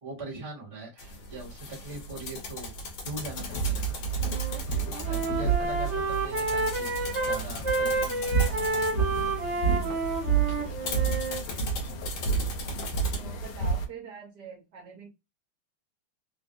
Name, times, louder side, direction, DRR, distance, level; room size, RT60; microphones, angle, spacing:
voice 1, 0.0-2.7 3.0-4.0 4.7-6.9 7.2-9.0, right 2 dB, 20° right, 1.0 m, -42 dB
sound 1, 1.0-13.2, left 2 dB, 70° left, 1.5 m, -39 dB
sound 2, 3.3-13.9, right 6 dB, 90° left, 1.5 m, -30 dB
Wind instrument woodwind instrument, 4.2-4.6 4.9-11.4, right 2 dB, 85° right, 0.6 m, -30 dB
voice 2, 11.0-12.6 13.1-15.1, right 5 dB, 65° right, 1.2 m, -47 dB
3.6 x 2.4 x 2.5 m
omnidirectional pair, 2.3 m